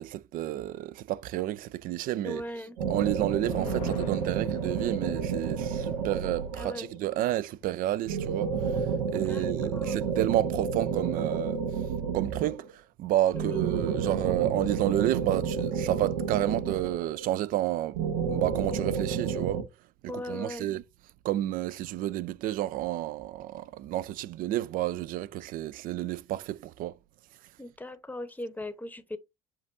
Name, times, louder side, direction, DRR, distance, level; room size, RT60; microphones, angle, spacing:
voice 1, 0.0-2.4 2.9-11.6 12.1-19.6 20.0-20.8 21.2-27.0, right 14 dB, 50° right, 0.4 m, -30 dB
voice 2, 2.2-2.8 3.4-3.6 6.5-6.9 9.2-9.5 9.7-10.0 13.3-13.6 20.1-20.7 27.6-29.2, left 1 dB, 10° left, 0.8 m, -38 dB
sound 1, 2.8-7.0 8.1-12.7 13.3-17.3 17.9-19.6, right 6 dB, 75° right, 0.8 m, -30 dB
sound 2, 2.9-9.8 10.1-10.2 10.6-11.1, left 8 dB, 85° left, 0.6 m, -47 dB
7.4 x 2.6 x 2.6 m
hypercardioid pair, 70°, 18 cm